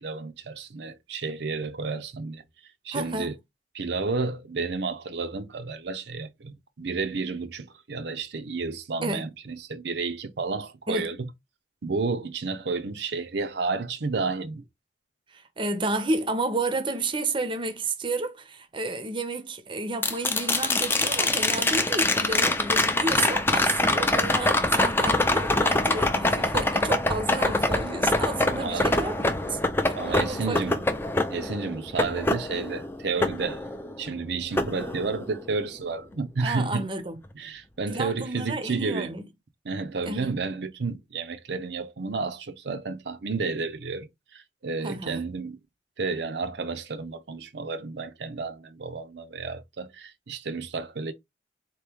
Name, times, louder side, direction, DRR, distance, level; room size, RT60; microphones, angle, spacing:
voice 1, 0.0-2.4 2.8-3.3 3.7-11.2 11.8-14.6 28.5-28.9 29.9-30.8 31.3-33.6 34.0-36.9 37.4-39.1 39.6-45.6 46.0-51.1, right 4 dB, 65° right, 0.6 m, -31 dB
voice 2, 2.9-3.3 9.0-9.3 10.9-11.1 15.3-29.6 30.1-30.7 36.4-37.2 37.9-39.2 40.0-40.3 44.8-45.2, right 2 dB, 30° right, 0.7 m, -31 dB
sound 1, 20.0-34.1 34.6-35.6 37.8-37.9, left 2 dB, 10° left, 0.5 m, -25 dB
4.2 x 3.0 x 3.4 m
head